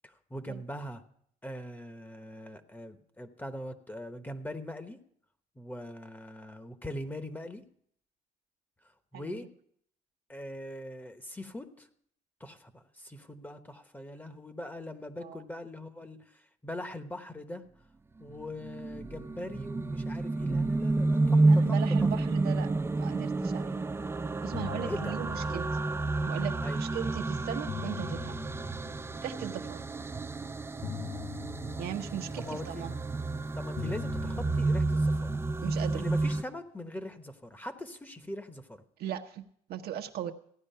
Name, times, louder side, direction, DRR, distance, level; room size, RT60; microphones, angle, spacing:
voice 1, 0.0-1.0 1.4-5.0 5.6-7.6 9.1-9.5 10.3-11.9 12.4-17.6 18.2-22.1 24.9-25.2 26.6-26.8 32.3-32.8 33.6-35.4 35.9-38.8, left 1 dB, 10° left, 9 dB, 1.0 m, -41 dB
sound 1, 18.4-36.4, right 2 dB, 15° right, 0.4 m, -30 dB
voice 2, 21.5-22.7 23.0-23.8 24.4-25.9 26.2-28.4 29.2-29.9 31.8-33.0 35.6-36.1 39.0-40.3, right 10 dB, 65° right, 5 dB, 1.0 m, -38 dB
sound 2, 23.9-24.1 24.4-26.7 27.4-29.8 30.8-33.3 33.8-36.3, left 10 dB, 55° left, 0.6 m, -44 dB
15.5 x 9.8 x 5.6 m, 0.66 s
cardioid pair, 110°, 17 cm